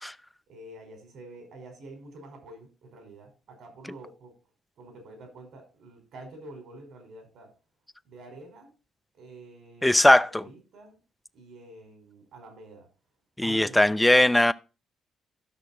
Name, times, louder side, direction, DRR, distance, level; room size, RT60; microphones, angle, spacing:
voice 1, 0.5-4.3 4.8-7.5 8.1-8.7 9.1-11.0 11.3-12.9 13.4-14.4, right 1 dB, 70° right, 5.2 m, -47 dB
voice 2, 9.8-10.4 13.4-14.5, left 1 dB, 10° left, 0.6 m, -19 dB
13.0 x 6.3 x 4.3 m
cardioid pair, 90°, 0 cm